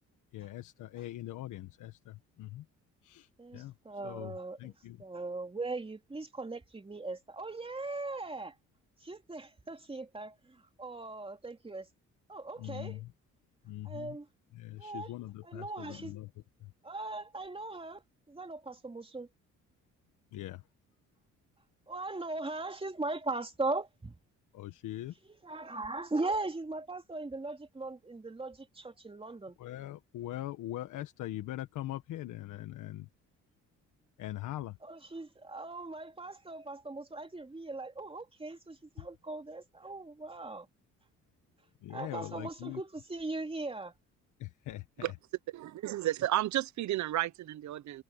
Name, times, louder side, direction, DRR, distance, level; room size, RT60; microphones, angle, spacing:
voice 1, 0.3-2.6 3.0-3.7 4.0-5.0 12.6-13.1 13.6-14.2 14.5-16.3 16.6-16.7 20.3-20.6 24.5-25.1 29.6-33.1 34.2-34.8 41.8-42.8 44.4-45.1, left 14 dB, 85° left, 1.4 m, -42 dB
voice 2, 3.4-4.7 5.0-8.5 9.0-11.9 12.3-13.0 13.8-14.3 14.8-15.1 15.4-16.1 16.8-18.0 18.3-19.3 21.9-24.2 25.4-29.6 34.8-40.7 41.9-43.9, right 2 dB, 20° right, 2.9 m, -39 dB
voice 3, 45.5-48.0, right 14 dB, 70° right, 0.8 m, -32 dB
cardioid pair, 90°, 30 cm